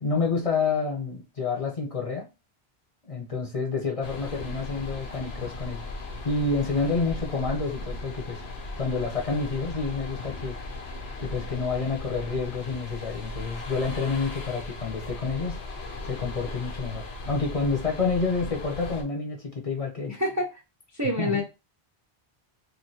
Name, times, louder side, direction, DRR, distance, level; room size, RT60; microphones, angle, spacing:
voice 1, 0.0-2.2 3.0-5.9 6.2-8.4 8.8-10.6 11.2-15.6 16.1-20.1 21.2-21.4, left 4 dB, 40° left, 0 dB, 0.7 m, -28 dB
sound 1, 4.0-19.0, left 2 dB, 80° left, 1.0 m, -37 dB
voice 2, 20.1-20.6 20.9-21.4, left 1 dB, 25° right, -1 dB, 0.4 m, -27 dB
3.2 x 2.6 x 2.7 m, 0.28 s
omnidirectional pair, 1.0 m